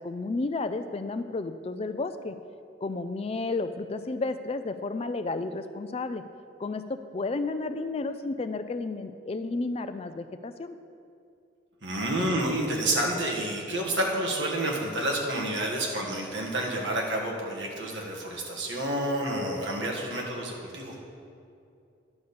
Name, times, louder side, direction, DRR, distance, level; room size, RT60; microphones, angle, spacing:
voice 1, 0.0-2.4 2.8-6.2 6.6-10.8, left 3 dB, 30° left, 10 dB, 0.3 m, -32 dB
voice 2, 11.8-21.0, right 1 dB, 65° right, -1 dB, 1.4 m, -29 dB
10.5 x 4.0 x 6.8 m, 2.5 s
head